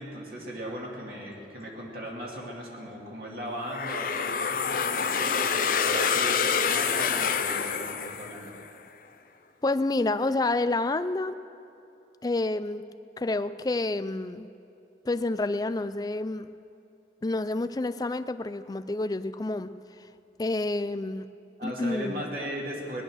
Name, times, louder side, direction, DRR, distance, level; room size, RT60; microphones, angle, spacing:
voice 1, 0.0-8.5 21.6-23.0, equal, 55° right, -2 dB, 2.5 m, -37 dB
sound 1, 3.7-8.6, left 6 dB, 50° left, 0.7 m, -27 dB
voice 2, 9.6-11.3 12.2-12.8 13.2-14.5 15.1-16.5 17.2-19.7 20.4-21.2 21.6-22.2, left 2 dB, 20° left, 12 dB, 0.4 m, -28 dB
19.0 x 11.0 x 6.3 m, 2.7 s
head